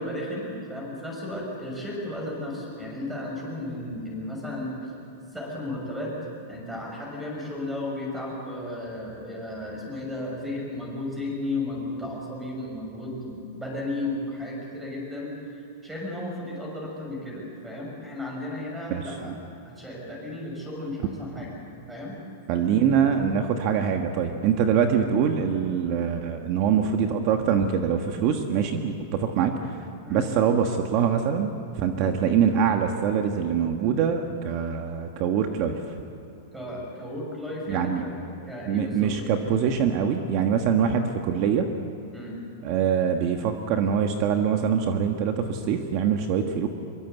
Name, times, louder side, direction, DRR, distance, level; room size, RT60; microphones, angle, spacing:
voice 1, 0.0-4.7 5.3-6.1 6.5-19.3 19.6-21.5 21.9-22.2 30.0-30.2 31.9-32.2 36.5-38.2 38.5-39.4 42.1-42.4, left 1 dB, 5° right, -2 dB, 6.5 m, -34 dB
voice 2, 22.5-35.9 37.7-38.0 38.7-41.7 42.6-46.7, right 7 dB, 35° right, 5 dB, 1.4 m, -24 dB
24.5 x 23.0 x 8.2 m, 3.0 s
supercardioid pair, 170°, 0 cm